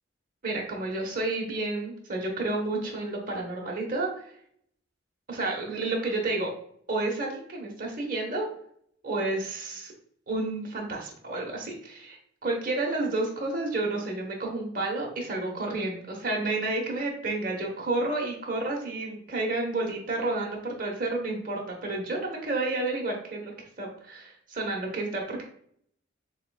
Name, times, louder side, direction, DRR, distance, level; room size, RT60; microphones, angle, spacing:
voice 1, 0.4-4.2 5.3-6.5 6.9-8.5 9.0-9.9 10.3-12.2 12.4-23.5 23.8-25.4, right 2 dB, 40° right, 0 dB, 1.0 m, -30 dB
6.6 x 2.3 x 2.3 m, 0.66 s
head